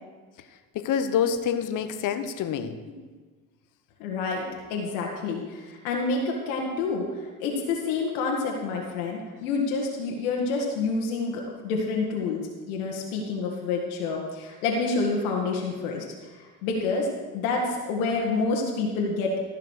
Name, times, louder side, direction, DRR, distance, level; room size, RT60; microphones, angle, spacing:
voice 1, 0.7-2.7, left 8 dB, 45° left, 9 dB, 1.1 m, -26 dB
voice 2, 4.0-4.4 4.7-16.0 16.4-17.1 17.3-19.3, left 3 dB, 65° left, -1 dB, 1.8 m, -28 dB
15.0 x 5.8 x 6.3 m, 1.4 s
hypercardioid pair, 70°, 45 cm